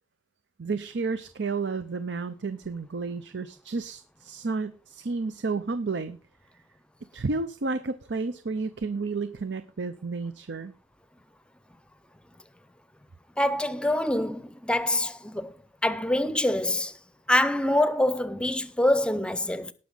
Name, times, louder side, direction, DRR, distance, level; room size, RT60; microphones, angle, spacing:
voice 1, 0.6-6.2 7.1-10.7, right 4 dB, 75° right, 0.6 m, -31 dB
voice 2, 13.4-15.5 15.8-16.9 17.3-19.7, left 1 dB, 5° left, 0.6 m, -25 dB
18.5 x 6.2 x 4.0 m
head